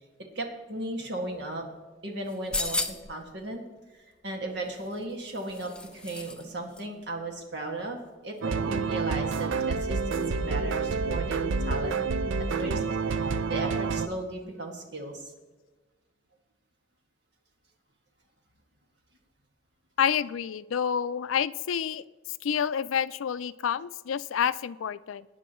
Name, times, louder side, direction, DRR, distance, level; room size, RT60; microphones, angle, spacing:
voice 1, 0.4-1.7 2.0-3.6 3.9-12.0 12.6-15.3, right 2 dB, 60° right, 1 dB, 1.9 m, -36 dB
sound 1, 2.3-3.2 4.7-6.4 6.7-6.8, left 2 dB, 5° left, 0.5 m, -34 dB
sound 2, 8.4-14.1, right 4 dB, 75° right, 0.5 m, -28 dB
voice 2, 20.0-22.0 22.4-25.3, left 8 dB, 90° left, 17 dB, 0.4 m, -28 dB
18.5 x 9.8 x 3.1 m, 1.3 s
head